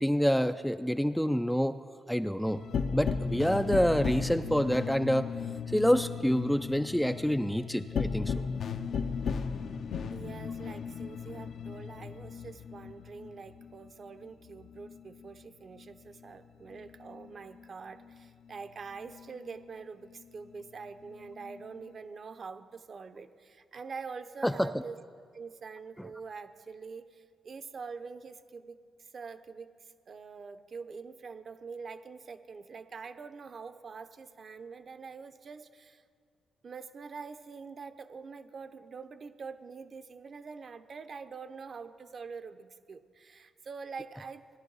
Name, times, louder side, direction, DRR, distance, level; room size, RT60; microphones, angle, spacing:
voice 1, 0.0-1.8 2.1-2.6 2.9-5.3 5.7-8.4 24.4-24.8 26.0-26.1, equal, ahead, 9 dB, 0.3 m, -27 dB
sound 1, 2.5-15.4 15.7-17.7 18.0-19.7 20.1-21.9, left 6 dB, 65° left, 0.6 m, -37 dB
voice 2, 10.1-25.0 25.3-29.7 30.1-36.0 36.6-44.4, right 5 dB, 45° right, 10 dB, 0.6 m, -45 dB
17.0 x 11.0 x 4.0 m, 2.2 s
cardioid pair, 100°, 0 cm